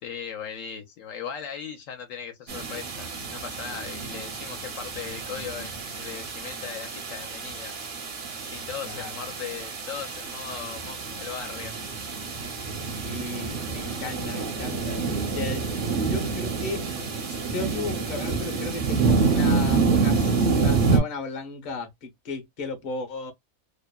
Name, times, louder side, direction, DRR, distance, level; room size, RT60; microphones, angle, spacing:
voice 1, 0.0-7.7 8.1-11.7, left 7 dB, 70° left, 0.9 m, -38 dB
sound 1, 2.5-21.0, right 4 dB, 50° right, 0.6 m, -27 dB
voice 2, 8.8-9.2 12.9-15.7 16.0-17.0 17.3-23.3, left 3 dB, 40° left, 0.7 m, -35 dB
2.7 x 2.0 x 2.2 m
omnidirectional pair, 1.5 m